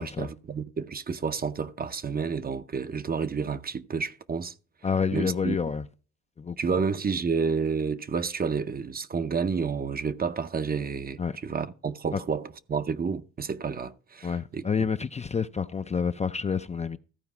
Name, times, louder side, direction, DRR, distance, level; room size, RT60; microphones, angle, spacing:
voice 1, 0.0-4.5 5.1-5.6 6.6-14.9, right 5 dB, 30° right, 0.7 m, -30 dB
voice 2, 4.8-5.8 6.4-6.8 11.2-11.3 12.1-12.2 14.2-17.0, left 6 dB, 25° left, 0.5 m, -29 dB
14.0 x 4.7 x 5.9 m
cardioid pair, 90°, 30 cm